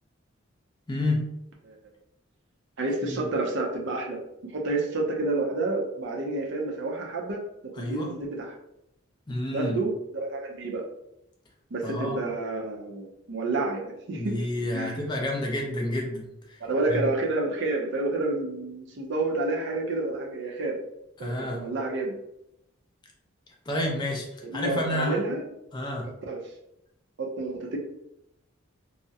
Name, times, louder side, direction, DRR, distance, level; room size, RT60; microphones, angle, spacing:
voice 1, 0.9-1.2 3.0-3.2 7.8-8.1 9.3-9.8 11.8-12.2 14.1-16.6 16.9-17.1 21.2-21.7 23.7-24.2 24.5-25.2 25.7-26.1, left 1 dB, 20° left, 0 dB, 0.4 m, -29 dB
voice 2, 2.8-7.4 7.8-8.5 9.5-10.8 11.7-14.4 14.7-15.0 16.6-20.7 21.2-22.1 24.4-25.4 26.3-26.4 27.2-27.8, right 2 dB, 60° right, 0 dB, 0.5 m, -29 dB
2.3 x 2.0 x 2.6 m, 0.84 s
head